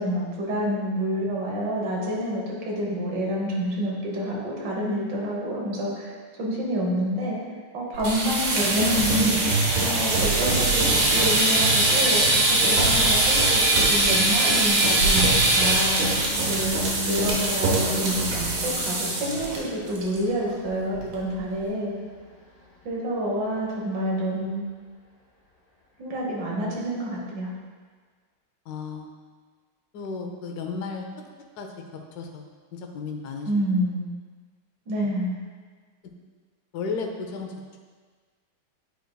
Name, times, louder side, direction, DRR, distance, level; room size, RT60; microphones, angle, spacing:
voice 1, 0.0-7.4 7.7-12.2 12.5-16.0 16.5-21.9 22.8-24.6 26.0-27.5 33.5-34.0 34.9-35.4, equal, 60° right, -4 dB, 1.8 m, -28 dB
sound 1, 7.9-19.6 19.9-20.2 20.5-20.6 21.0-21.4, right 2 dB, 85° right, 2.0 m, -22 dB
Car passing by / Truck / Engine, 14.5-23.2, left 1 dB, 30° left, 1.2 m, -37 dB
voice 2, 28.7-29.1 29.9-31.1 31.6-32.4 32.7-33.5 36.7-37.5, left 4 dB, 75° left, 3 dB, 0.9 m, -34 dB
9.0 x 4.6 x 2.3 m, 1.5 s
omnidirectional pair, 2.4 m